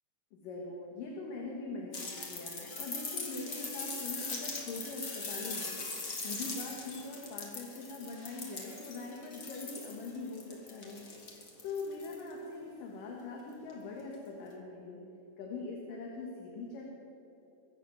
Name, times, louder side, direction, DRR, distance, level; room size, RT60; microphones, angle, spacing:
voice 1, 0.3-5.8 6.2-11.1 11.6-15.0 15.4-16.9, left 3 dB, 80° left, -1 dB, 3.2 m, -42 dB
sound 1, 1.9-12.3 13.7-13.8, left 3 dB, 35° left, 2.1 m, -41 dB
22.5 x 7.9 x 7.6 m, 3.0 s
omnidirectional pair, 3.8 m